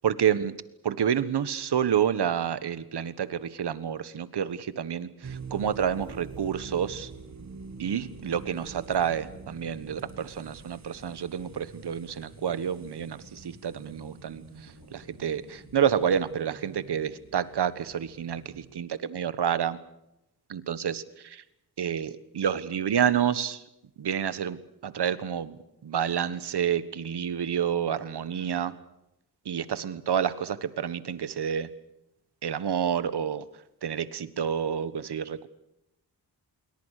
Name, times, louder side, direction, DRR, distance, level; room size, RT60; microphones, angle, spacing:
voice 1, 0.0-0.5 0.8-7.1 7.8-19.8 20.5-21.4 21.8-23.6 24.0-28.7 29.4-31.7 32.4-33.4 33.8-35.5, right 8 dB, 85° right, 14 dB, 1.5 m, -29 dB
sound 1, 5.2-18.8, right 5 dB, 45° right, 1.7 m, -46 dB
sound 2, 6.0-16.0, left 3 dB, 70° left, 6.0 m, -55 dB
27.5 x 22.5 x 6.7 m, 0.86 s
wide cardioid pair, 110°, 39 cm